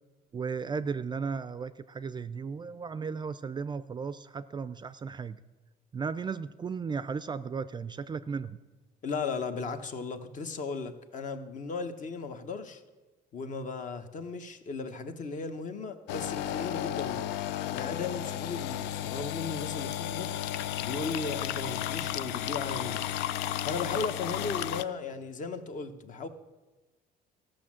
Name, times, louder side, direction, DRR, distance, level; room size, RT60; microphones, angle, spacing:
voice 1, 0.3-5.4 5.9-8.6, right 5 dB, 25° right, 14 dB, 0.4 m, -35 dB
voice 2, 9.0-12.8 13.3-17.3 17.7-20.3 20.8-23.1 23.6-26.3, left 4 dB, 50° left, 8 dB, 1.1 m, -36 dB
sound 1, 16.1-24.8, left 12 dB, 90° left, 0.4 m, -33 dB
14.5 x 6.4 x 7.5 m, 1.2 s
cardioid pair, 110°, 17 cm